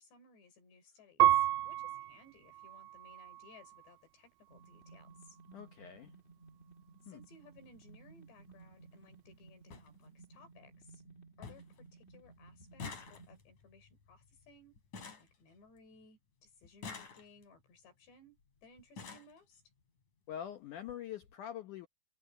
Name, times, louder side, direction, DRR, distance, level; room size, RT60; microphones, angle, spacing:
voice 1, 0.0-5.4 7.0-11.0 11.4-14.8 15.2-19.6, left 3 dB, 70° left, 7.0 m, -61 dB
Piano, 1.2-4.0 4.6-5.3, right 14 dB, 75° right, 2.2 m, -32 dB
sound 1, 4.5-13.4, right 4 dB, 20° left, 2.2 m, -58 dB
voice 2, 5.5-6.2 7.1-7.2 20.3-21.9, left 10 dB, 90° left, 1.7 m, -44 dB
sound 2, 7.6-7.8 9.0-9.1 9.3-9.4 9.7-9.9 10.4-10.8 11.1-11.2 11.4-11.8 12.1-16.1 16.6-17.6 18.4-18.5 18.8-19.4 20.3-20.4 20.8-21.0 21.2-21.3, left 5 dB, 45° left, 5.0 m, -49 dB
omnidirectional pair, 5.2 m